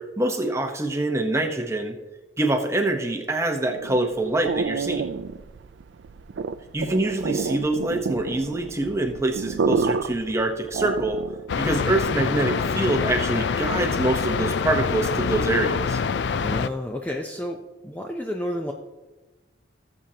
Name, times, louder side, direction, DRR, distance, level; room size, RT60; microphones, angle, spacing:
voice 1, 0.0-2.0 2.4-5.1 6.7-11.2 11.6-16.0, right 2 dB, 15° right, 4 dB, 0.9 m, -25 dB
sound 1, 3.7-11.5, right 5 dB, 75° right, 0.4 m, -29 dB
sound 2, 11.5-16.7, left 5 dB, 65° left, 0.4 m, -25 dB
voice 2, 16.4-17.6 17.8-18.7, left 1 dB, 10° left, 2 dB, 0.5 m, -30 dB
18.0 x 7.4 x 2.8 m, 1.2 s
head